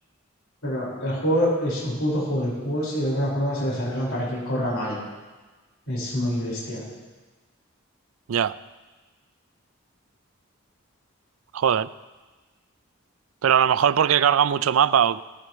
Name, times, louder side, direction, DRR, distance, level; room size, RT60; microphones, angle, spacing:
voice 1, 0.6-5.0 5.9-6.8, equal, 90° left, -6 dB, 5.1 m, -26 dB
voice 2, 11.5-11.9 13.4-15.2, right 8 dB, 80° right, 17 dB, 0.4 m, -20 dB
19.0 x 14.0 x 3.1 m, 1.3 s
head